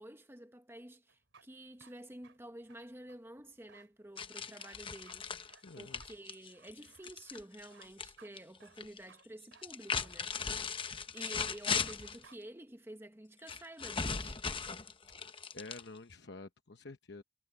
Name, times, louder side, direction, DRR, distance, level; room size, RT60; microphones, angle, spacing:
voice 1, 0.0-10.4 11.1-14.4, right 1 dB, 10° right, 1.1 m, -50 dB
sound 1, 1.1-12.0 12.2-12.4, right 5 dB, 75° right, 3.9 m, -62 dB
sound 2, 4.2-8.1 8.4-9.0 9.5-12.2 13.5-16.2, left 5 dB, 25° left, 0.9 m, -38 dB
voice 2, 5.6-6.0 15.2-17.2, left 3 dB, 60° left, 1.0 m, -49 dB
head